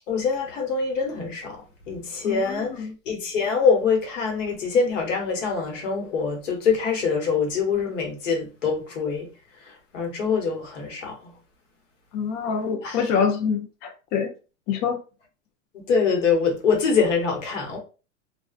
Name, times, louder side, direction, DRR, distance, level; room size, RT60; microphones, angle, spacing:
voice 1, 0.1-9.3 9.9-11.3 12.8-13.0 15.9-17.8, left 5 dB, 85° left, 1.1 m, -24 dB
voice 2, 2.2-2.9 12.1-14.3 14.7-15.0, left 6 dB, 40° left, 0.5 m, -26 dB
2.4 x 2.3 x 2.4 m
hypercardioid pair, 115°, 37 cm